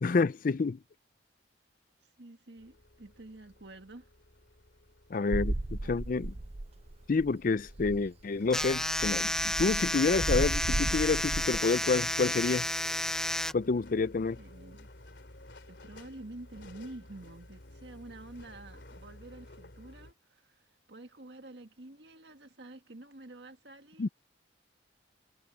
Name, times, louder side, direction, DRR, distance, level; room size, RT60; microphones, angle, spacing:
voice 1, 0.0-0.8 5.1-6.3 7.1-12.7 13.5-14.4 24.0-24.1, left 4 dB, 50° left, 0.5 m, -28 dB
voice 2, 2.0-4.1 5.8-6.0 14.4-14.9 15.7-24.1, right 2 dB, 65° right, 1.9 m, -49 dB
sound 1, 2.6-20.1, left 1 dB, 75° left, 3.0 m, -53 dB
sound 2, 5.3-6.9 7.2-7.3 7.6-8.1 8.6-11.6, right 2 dB, 35° right, 0.7 m, -34 dB
sound 3, 8.5-13.5, left 1 dB, 5° left, 0.7 m, -31 dB
head